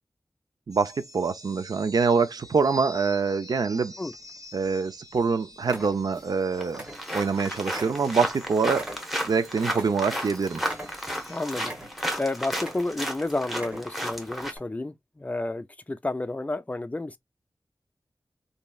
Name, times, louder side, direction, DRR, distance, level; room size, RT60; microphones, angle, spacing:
sound 1, 0.7-11.6, equal, 55° right, 0.9 m, -48 dB
voice 1, 0.7-3.9 4.5-6.8 7.1-8.9 9.2-10.6, right 5 dB, 70° right, 0.4 m, -25 dB
sound 2, 4.1-4.8 5.1-5.3 5.6-6.4 6.7-7.4 7.7-10.3 10.6-11.3 11.6-12.2 12.5-13.1 13.5-14.1 14.5-14.6, right 1 dB, 15° right, 1.3 m, -41 dB
sound 3, 6.2-6.3 6.6-14.5, equal, ahead, 1.1 m, -33 dB
voice 2, 11.3-17.2, left 2 dB, 20° left, 0.4 m, -31 dB
3.0 x 2.7 x 2.3 m
wide cardioid pair, 65°, 7 cm